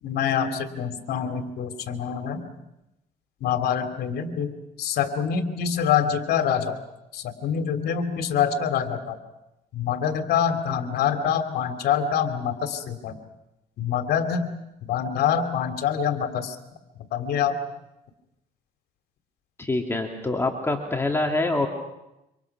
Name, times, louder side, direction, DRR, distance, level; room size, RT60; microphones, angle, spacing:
voice 1, 0.0-2.5 3.4-4.5 4.8-6.8 7.1-9.2 9.7-13.2 13.8-14.5 14.8-16.6 17.1-17.6, left 8 dB, 70° left, 7 dB, 2.9 m, -25 dB
voice 2, 19.6-21.7, left 2 dB, 15° left, 2 dB, 2.5 m, -25 dB
27.0 x 25.5 x 6.0 m, 0.91 s
cardioid pair, 110°, 17 cm